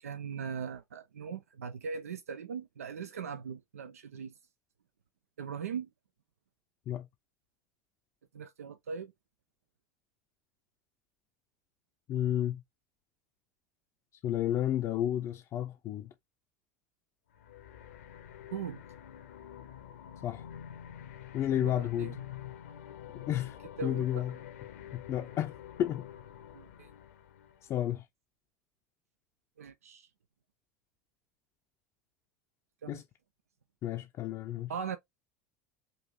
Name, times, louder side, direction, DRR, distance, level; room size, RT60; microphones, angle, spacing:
voice 1, 0.0-4.3 5.4-5.9 8.3-9.1 18.5-18.8 21.5-22.2 23.8-24.2 26.5-26.9 29.6-30.1 32.8-33.0 34.7-35.0, right 6 dB, 80° right, 0.3 m, -40 dB
voice 2, 12.1-12.6 14.2-16.1 20.2-20.4 21.3-22.1 23.3-24.4 24.9-25.5 25.8-26.1 27.7-28.0 32.9-33.0 33.8-34.7, left 11 dB, 40° left, 0.5 m, -31 dB
sound 1, 17.3-27.9, left 10 dB, 70° left, 0.7 m, -47 dB
5.3 x 2.6 x 2.9 m
figure-of-eight pair, 75°, 8 cm